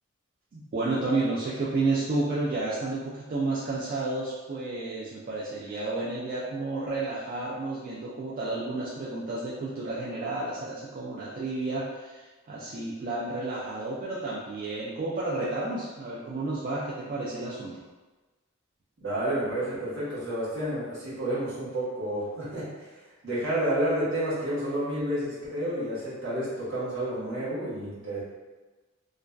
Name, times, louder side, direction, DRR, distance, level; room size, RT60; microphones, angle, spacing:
voice 1, 0.5-17.8, right 2 dB, 40° right, -7 dB, 0.3 m, -31 dB
voice 2, 19.0-22.9 23.2-28.2, right 1 dB, 65° right, -10 dB, 1.0 m, -30 dB
2.5 x 2.2 x 2.2 m, 1.2 s
head